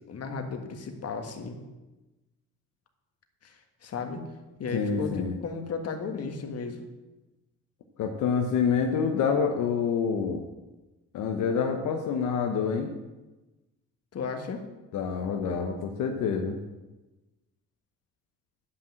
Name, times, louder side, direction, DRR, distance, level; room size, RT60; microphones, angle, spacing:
voice 1, 0.1-1.6 3.4-4.2 4.6-6.8 14.1-14.6, left 4 dB, 55° left, 5 dB, 1.7 m, -35 dB
voice 2, 4.7-5.4 8.0-10.4 11.1-12.9 14.9-16.6, left 6 dB, 85° left, 3 dB, 1.1 m, -27 dB
10.5 x 5.9 x 7.6 m, 1.1 s
cardioid pair, 90°, 30 cm